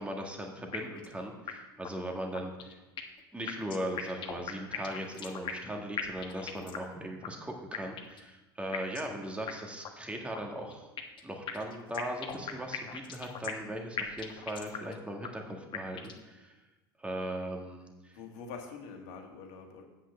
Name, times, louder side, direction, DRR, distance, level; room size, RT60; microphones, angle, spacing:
voice 1, 0.0-2.8 3.3-10.9 11.2-16.6 17.0-18.2, right 1 dB, 10° right, 2 dB, 2.0 m, -39 dB
sound 1, 0.7-1.1 1.5-1.6 1.8-1.9 2.3-3.2 3.5-5.7 6.0-6.9 7.2-7.3 7.7-8.2 8.7-9.1 9.5-9.6 9.8-9.9 10.3-11.2 11.5-13.7 14.0-14.9 15.2-15.3 15.7-16.2, left 8 dB, 40° left, 1.3 m, -39 dB
voice 2, 18.1-19.8, left 5 dB, 60° left, 3 dB, 1.9 m, -45 dB
8.4 x 5.8 x 7.1 m, 1.1 s
hypercardioid pair, 85°, 13 cm